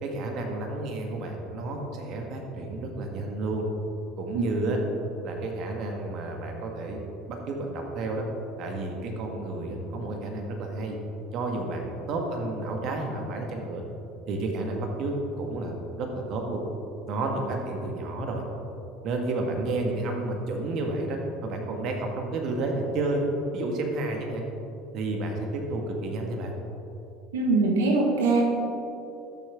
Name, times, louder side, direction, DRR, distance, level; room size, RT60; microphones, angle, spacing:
voice 1, 0.0-3.6 4.2-4.8 5.2-7.0 7.3-8.2 8.6-11.0 11.3-13.8 14.3-16.6 17.1-18.4 19.0-24.4 24.9-26.5, right 2 dB, 55° right, 2 dB, 1.6 m, -31 dB
voice 2, 27.3-28.4, right 3 dB, 85° right, 0 dB, 1.5 m, -22 dB
13.0 x 6.7 x 3.7 m, 2.8 s
hypercardioid pair, 85°, 0 cm